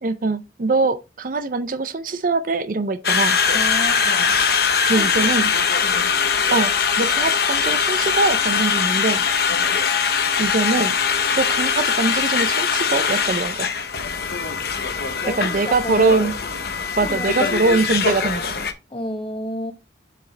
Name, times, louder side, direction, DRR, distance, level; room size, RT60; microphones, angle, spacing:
voice 1, 0.0-3.4 4.9-5.5 6.5-9.2 10.4-10.9 11.4-13.7 15.4-16.3 17.0-18.5, right 3 dB, 50° right, 0.5 m, -22 dB
Conversation, 3.0-18.7, left 6 dB, 60° left, 0.8 m, -21 dB
voice 2, 3.5-4.4 5.0-5.1 5.8-6.1 9.5-9.8 15.2-16.3 17.0-17.6 18.9-19.7, left 1 dB, 30° left, 1.2 m, -31 dB
6.6 x 4.9 x 3.2 m
head